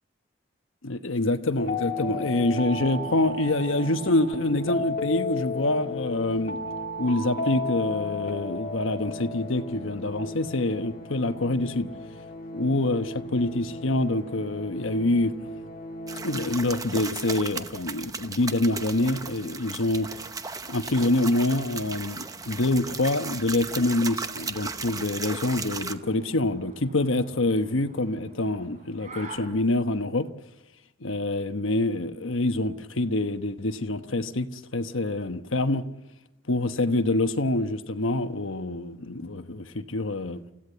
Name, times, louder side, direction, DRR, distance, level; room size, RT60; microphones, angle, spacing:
voice 1, 0.8-6.6 7.0-11.9 12.5-15.3 16.2-20.1 20.7-30.3 31.0-35.8 36.5-40.4, left 2 dB, 80° left, 1.2 m, -26 dB
sound 1, 1.6-17.3, left 2 dB, 45° left, 2.4 m, -34 dB
sound 2, 16.1-25.9, right 4 dB, 15° right, 0.8 m, -36 dB
sound 3, 18.8-29.4, right 2 dB, 35° right, 4.6 m, -50 dB
28.5 x 15.5 x 8.0 m
head